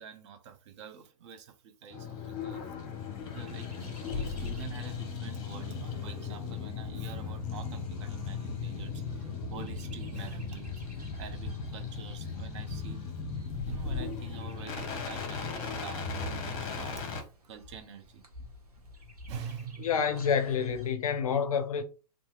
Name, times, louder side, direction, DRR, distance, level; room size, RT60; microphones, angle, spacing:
voice 1, 0.0-2.6 3.3-9.2 9.5-10.7 11.2-13.0 13.6-18.2 19.3-19.9, right 7 dB, 50° right, 0.6 m, -46 dB
sound 1, 1.9-17.2, left 5 dB, 35° left, 0.8 m, -37 dB
Chirp tweet, 2.9-20.9, equal, 80° right, 0.8 m, -53 dB
voice 2, 19.8-21.8, left 7 dB, 65° left, 0.4 m, -28 dB
2.7 x 2.5 x 2.3 m
figure-of-eight pair, 105°, 19 cm